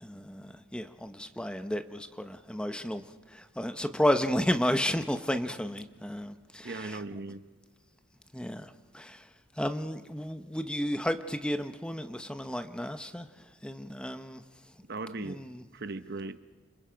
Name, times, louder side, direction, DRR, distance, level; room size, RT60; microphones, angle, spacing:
voice 1, 0.0-7.2 8.3-14.8 15.1-15.6, equal, 5° left, 8 dB, 0.9 m, -33 dB
voice 2, 6.6-7.4 14.9-15.5 15.7-16.4, right 3 dB, 55° right, 11 dB, 0.9 m, -38 dB
29.5 x 26.0 x 5.2 m, 1.3 s
head